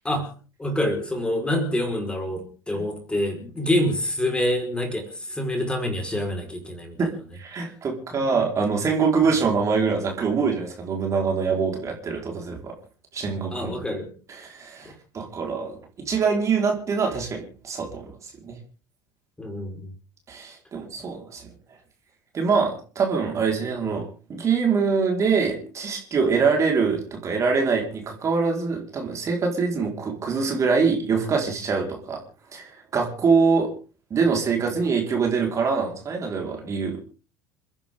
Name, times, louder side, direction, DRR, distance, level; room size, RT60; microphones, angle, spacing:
voice 1, 0.6-7.0 8.1-8.2 13.5-14.1 19.4-19.9, left 1 dB, 10° left, 4 dB, 4.9 m, -26 dB
voice 2, 7.4-12.7 13.1-13.7 14.3-18.1 18.4-18.6 20.3-21.5 22.3-24.0 24.3-32.2 32.5-33.7 34.1-37.0, right 5 dB, 30° right, 1 dB, 4.8 m, -24 dB
29.5 x 11.0 x 3.8 m, 0.38 s
figure-of-eight pair, 70°, 10 cm